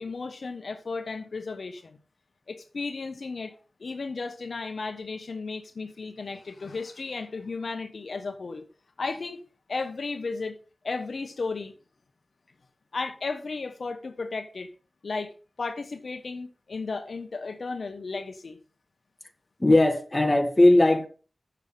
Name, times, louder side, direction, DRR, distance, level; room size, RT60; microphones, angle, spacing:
voice 1, 0.0-2.0 2.5-3.5 3.8-8.6 9.0-9.4 9.7-10.6 10.8-11.7 12.9-14.7 15.0-15.3 15.6-18.6, left 4 dB, 75° left, 1.1 m, -34 dB
voice 2, 19.6-21.1, left 1 dB, 25° left, 1.8 m, -19 dB
8.1 x 7.0 x 5.6 m
wide cardioid pair, 80°, 0 cm